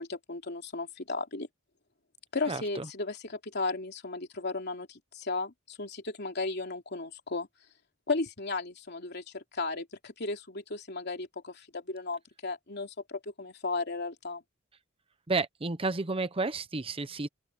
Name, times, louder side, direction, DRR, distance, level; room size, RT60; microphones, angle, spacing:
voice 1, 0.0-1.5 2.3-7.5 8.1-14.4, left 3 dB, 60° left, 3.1 m, -35 dB
voice 2, 2.5-2.9 15.3-17.3, right 3 dB, 30° right, 0.9 m, -31 dB
open air
head